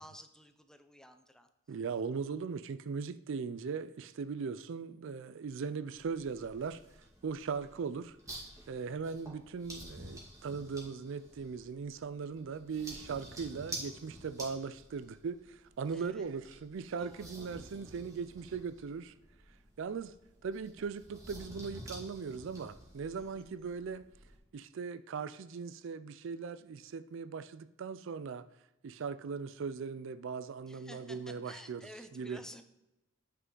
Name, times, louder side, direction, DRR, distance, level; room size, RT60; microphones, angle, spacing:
voice 1, 0.0-1.5 8.7-9.1 15.9-16.2 17.0-17.3 23.1-23.3 30.7-32.6, left 1 dB, 5° left, 0.5 m, -53 dB
voice 2, 1.7-6.8 7.2-8.2 8.7-19.1 19.8-20.1 20.4-24.1 24.5-28.5 28.8-32.4, right 5 dB, 65° right, 0.4 m, -39 dB
sound 1, 5.9-24.4, right 1 dB, 15° right, 2.1 m, -50 dB
9.4 x 5.8 x 3.8 m
head